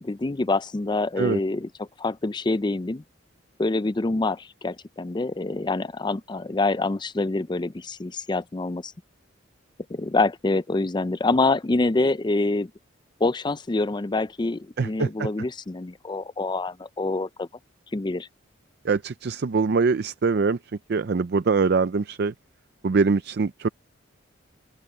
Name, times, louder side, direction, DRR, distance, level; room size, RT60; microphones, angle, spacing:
voice 1, 0.0-3.0 3.6-8.9 9.9-12.7 13.2-17.5 17.9-18.3, left 2 dB, 25° left, 0.5 m, -26 dB
voice 2, 14.8-15.3 18.8-20.6 20.9-22.3 22.8-23.7, right 4 dB, 55° right, 0.4 m, -23 dB
open air
head